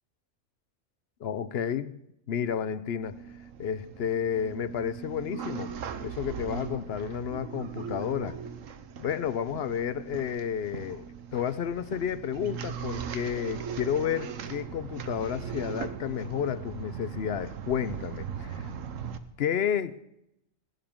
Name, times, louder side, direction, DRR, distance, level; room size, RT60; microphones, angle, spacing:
voice 1, 1.2-2.0 2.3-3.2 3.6-5.7 6.0-8.4 9.0-18.7 19.4-20.0, left 8 dB, 60° left, 15 dB, 0.7 m, -31 dB
sound 1, 3.0-19.2, right 7 dB, 75° right, 1.2 m, -39 dB
17.5 x 11.5 x 3.6 m, 0.79 s
omnidirectional pair, 1.4 m